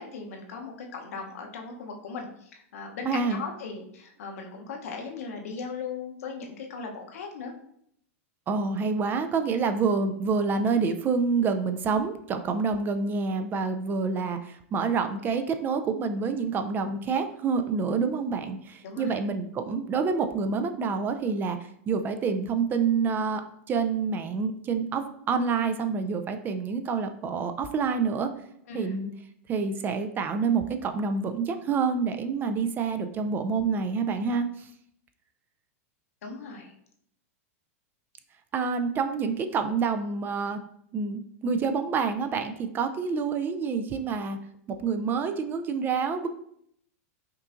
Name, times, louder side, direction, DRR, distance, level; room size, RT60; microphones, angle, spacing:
voice 1, 0.0-7.5 18.8-19.2 28.7-29.0 36.2-36.7, left 5 dB, 75° left, 2 dB, 0.8 m, -38 dB
voice 2, 3.0-3.4 8.5-21.6 21.9-23.4 23.7-28.3 28.7-29.1 29.5-34.7 38.5-40.6 40.9-44.4 44.7-46.3, right 5 dB, 25° right, 8 dB, 0.3 m, -27 dB
5.3 x 2.5 x 2.5 m, 0.70 s
hypercardioid pair, 120°, 8 cm